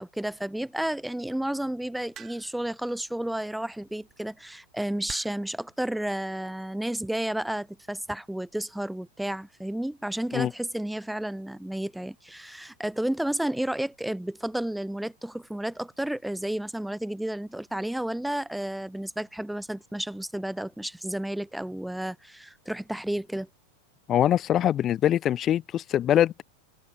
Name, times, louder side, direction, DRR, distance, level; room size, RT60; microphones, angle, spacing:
voice 1, 0.0-23.5, right 1 dB, 5° right, 0.7 m, -32 dB
sound 1, 2.1-2.7 3.9-4.1 5.1-5.6 6.5-6.8, right 9 dB, 25° right, 4.4 m, -45 dB
voice 2, 24.1-26.4, left 11 dB, 30° left, 1.6 m, -23 dB
figure-of-eight pair, 90°, 0 cm